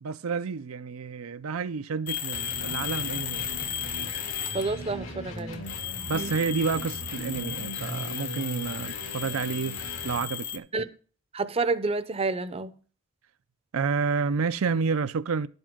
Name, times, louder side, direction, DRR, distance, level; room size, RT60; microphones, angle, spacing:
voice 1, 0.0-3.5 6.1-10.7 13.7-15.5, right 5 dB, 85° right, 0.5 m, -30 dB
sound 1, 2.1-4.9 5.4-10.6, left 9 dB, 40° left, 0.6 m, -35 dB
sound 2, 2.3-10.3, equal, 70° left, 2.2 m, -39 dB
voice 2, 4.5-5.6 6.1-6.3 10.7-10.9 11.3-12.7, right 3 dB, 30° right, 0.6 m, -29 dB
11.0 x 7.9 x 3.6 m
head